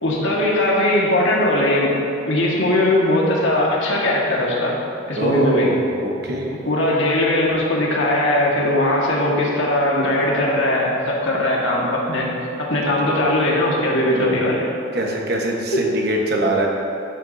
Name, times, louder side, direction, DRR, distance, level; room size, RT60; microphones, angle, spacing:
voice 1, 0.0-2.0 2.3-4.7 5.1-5.7 6.6-12.3 12.6-14.7 15.7-15.8, left 1 dB, 70° left, -3 dB, 1.6 m, -19 dB
voice 2, 5.2-6.6 13.0-13.1 14.1-14.5 14.9-16.7, right 1 dB, 50° right, 0 dB, 1.1 m, -23 dB
11.5 x 8.0 x 2.7 m, 2.8 s
head